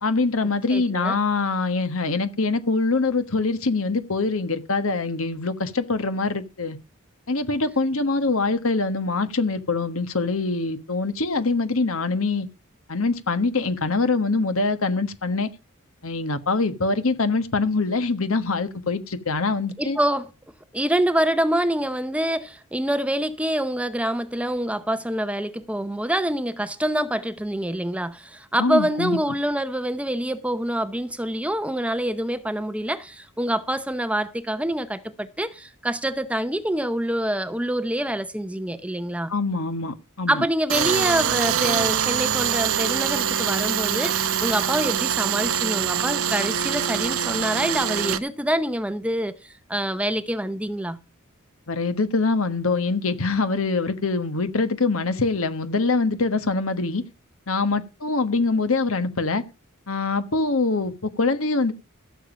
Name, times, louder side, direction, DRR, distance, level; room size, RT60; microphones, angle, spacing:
voice 1, 0.0-6.8 7.3-12.5 12.9-15.5 16.0-20.0 28.6-29.2 39.3-40.4 51.7-57.0 57.5-59.4 59.9-61.7, left 3 dB, 70° left, 1.4 m, -24 dB
voice 2, 0.7-1.2 19.8-20.3 20.7-39.3 40.3-51.0, right 1 dB, 5° right, 0.7 m, -26 dB
Tools, 40.7-48.2, right 9 dB, 75° right, 1.0 m, -24 dB
15.0 x 7.2 x 5.0 m
head